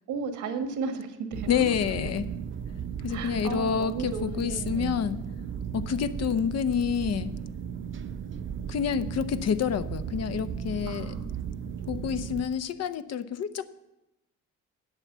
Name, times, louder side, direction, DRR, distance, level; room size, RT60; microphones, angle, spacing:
voice 1, 0.1-1.7 3.1-5.1 10.9-11.3, right 5 dB, 85° right, 7 dB, 1.4 m, -34 dB
sound 1, 1.3-12.4, right 7 dB, 40° right, 0.7 m, -36 dB
voice 2, 1.5-2.3 3.0-5.2 5.7-7.3 8.7-11.1 11.9-13.7, left 7 dB, 55° left, 13 dB, 0.7 m, -28 dB
8.1 x 7.9 x 7.3 m, 0.93 s
cardioid pair, 90°, 30 cm